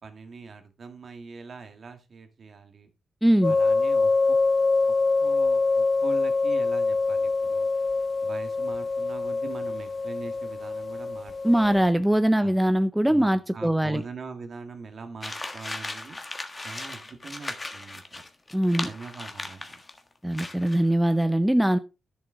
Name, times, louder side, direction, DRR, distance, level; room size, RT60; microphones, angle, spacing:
voice 1, 0.0-2.9 3.4-4.4 5.2-7.7 8.2-11.9 12.4-12.7 13.0-16.2 16.6-18.2 18.8-19.8, right 4 dB, 55° right, 1.7 m, -42 dB
voice 2, 3.2-3.6 11.4-14.0 18.5-18.9 20.2-21.8, right 1 dB, 5° right, 0.6 m, -22 dB
sound 1, 3.4-11.9, left 3 dB, 50° left, 0.8 m, -25 dB
sound 2, 15.2-20.0 20.3-20.8, left 2 dB, 25° left, 1.5 m, -37 dB
10.5 x 7.1 x 3.6 m
cardioid pair, 80°, 0 cm